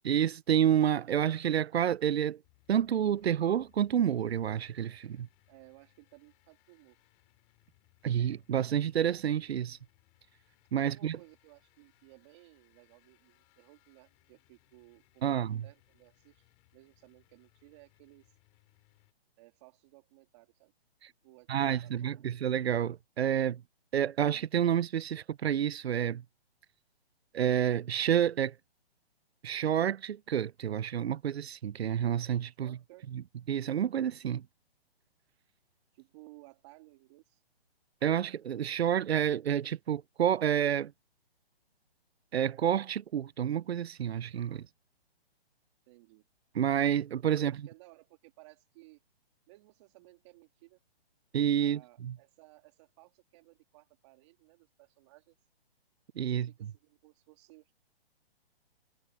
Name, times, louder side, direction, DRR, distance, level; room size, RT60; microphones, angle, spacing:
voice 1, 0.0-2.4 2.7-5.3 8.0-9.8 10.7-11.2 15.2-15.6 21.0-21.1 21.5-23.6 23.9-26.2 27.3-28.5 29.4-32.8 33.1-33.2 33.5-34.4 38.0-40.9 42.3-44.6 46.5-47.5 51.3-52.1 56.2-56.5, right 9 dB, 85° right, 0.6 m, -29 dB
sound 1, 2.4-19.1, left 32 dB, 25° left, 4.9 m, -69 dB
voice 2, 5.5-7.0 10.8-18.3 19.4-20.7 21.2-22.3 32.6-33.1 35.9-37.4 45.9-46.3 47.3-49.0 49.5-50.8 51.6-55.4 56.3-57.8, right 22 dB, 30° right, 2.6 m, -58 dB
hypercardioid pair, 160°, 31 cm